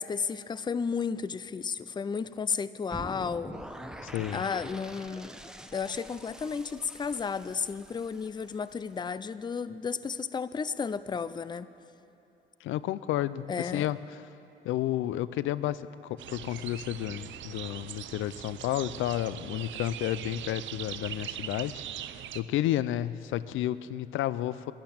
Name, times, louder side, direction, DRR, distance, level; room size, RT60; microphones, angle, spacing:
voice 1, 0.0-3.5 4.3-5.4 5.7-11.7 13.5-13.9, left 5 dB, 20° left, 15 dB, 0.4 m, -33 dB
sound 1, 2.9-8.9, right 1 dB, 5° right, 0.8 m, -45 dB
voice 2, 4.0-4.4 12.6-14.0 14.6-21.8 22.3-24.7, left 13 dB, 80° left, 17 dB, 0.4 m, -31 dB
sound 2, 16.2-22.4, right 11 dB, 70° right, 0.6 m, -41 dB
12.0 x 11.5 x 8.6 m, 3.0 s
cardioid pair, 90°, 20 cm